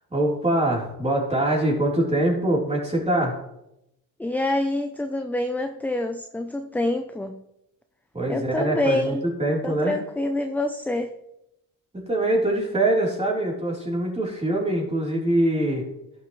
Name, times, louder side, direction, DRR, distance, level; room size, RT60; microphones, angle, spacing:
voice 1, 0.1-3.4 8.1-10.0 12.1-15.8, right 1 dB, 15° right, -3 dB, 3.6 m, -23 dB
voice 2, 4.2-7.4 8.3-9.3 9.6-11.1, left 1 dB, 5° left, 6 dB, 0.5 m, -26 dB
12.0 x 6.9 x 3.1 m, 0.84 s
supercardioid pair, 80°, 45 cm